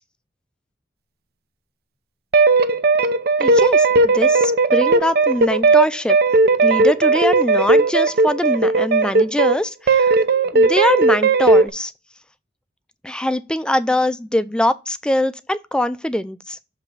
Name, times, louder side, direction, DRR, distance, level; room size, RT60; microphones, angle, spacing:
sound 1, 2.3-9.6 9.9-11.7, right 3 dB, 60° right, 0.5 m, -16 dB
voice 1, 3.4-6.2 6.6-10.1 10.5-11.9 13.0-16.6, left 1 dB, 5° left, 0.3 m, -22 dB
7.0 x 3.3 x 5.5 m
head